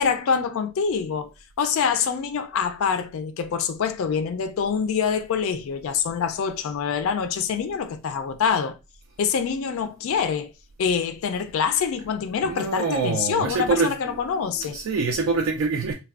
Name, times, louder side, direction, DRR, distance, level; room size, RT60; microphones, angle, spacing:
voice 1, 0.0-1.3 1.6-8.8 9.2-10.5 10.8-14.8, left 6 dB, 65° left, 0.3 m, -25 dB
voice 2, 12.4-13.9 14.6-15.9, right 4 dB, 65° right, 0.3 m, -24 dB
3.2 x 2.2 x 2.3 m
head